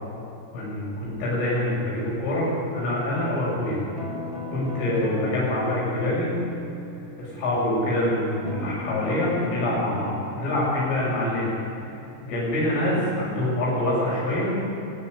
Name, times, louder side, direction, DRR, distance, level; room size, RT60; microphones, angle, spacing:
voice 1, 0.5-3.8 4.5-6.3 7.2-11.5 11.8-11.9 12.2-14.5, left 1 dB, 70° left, -6 dB, 9.9 m, -25 dB
Guitar, 4.0-7.7 8.4-13.1, equal, 30° left, 0.6 m, -38 dB
24.5 x 16.0 x 9.9 m, 2.7 s
omnidirectional pair, 5.9 m